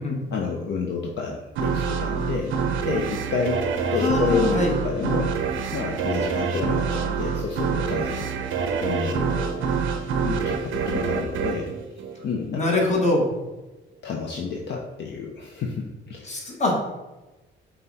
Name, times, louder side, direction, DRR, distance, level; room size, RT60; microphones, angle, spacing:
voice 1, 0.3-2.6 2.8-5.4 5.7-8.4 8.8-9.6 10.2-11.7 12.2-12.8 14.0-16.4, left 5 dB, 60° left, 0 dB, 0.6 m, -29 dB
sound 1, 1.6-12.7, right 6 dB, 80° right, 0.5 m, -26 dB
voice 2, 4.0-4.7 12.5-13.3 16.2-16.8, left 2 dB, 35° left, -1 dB, 1.3 m, -23 dB
5.4 x 2.2 x 4.0 m, 1.1 s
cardioid pair, 90°, 20 cm